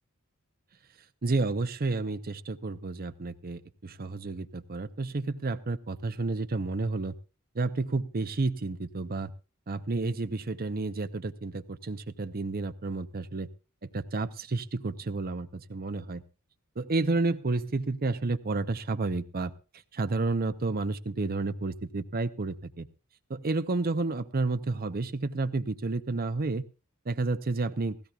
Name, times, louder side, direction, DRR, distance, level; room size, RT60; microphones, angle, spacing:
voice 1, 1.2-7.1 7.5-9.3 9.7-13.5 13.8-16.2 16.8-19.5 19.9-22.9 23.3-26.6 27.1-28.0, right 3 dB, 45° right, 12 dB, 0.7 m, -31 dB
17.0 x 16.0 x 2.4 m, 0.32 s
head